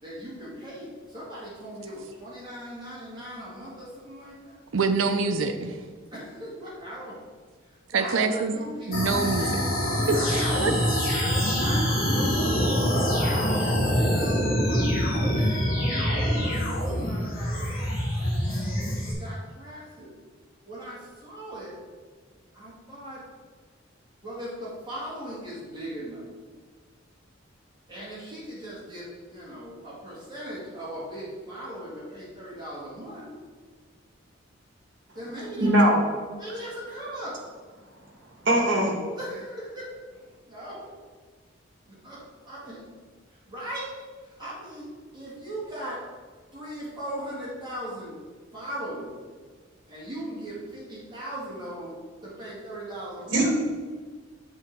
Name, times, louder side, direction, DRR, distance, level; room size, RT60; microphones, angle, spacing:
voice 1, 0.0-4.6 6.1-7.2 7.6-9.6 10.1-10.9 11.6-12.5 12.9-14.9 15.3-17.7 18.2-20.1 20.7-21.8 22.5-23.2 24.2-26.2 27.9-33.3 35.1-35.7 36.4-37.4 39.1-41.0 41.9-42.9 43.3-43.9 44.2-46.0 46.5-48.2 48.5-49.1 49.9-53.5, right 1 dB, 20° right, -7 dB, 2.0 m, -39 dB
voice 2, 4.7-5.7 7.9-8.6 8.9-9.6 10.1-10.2 10.6-10.7, right 4 dB, 80° right, 8 dB, 0.6 m, -25 dB
sound 1, 8.9-19.1, equal, 45° left, 1.8 m, -25 dB
voice 3, 35.5-36.0 38.4-38.9 53.3-53.5, right 1 dB, 65° right, 0 dB, 1.6 m, -20 dB
7.7 x 3.8 x 4.5 m, 1.5 s
head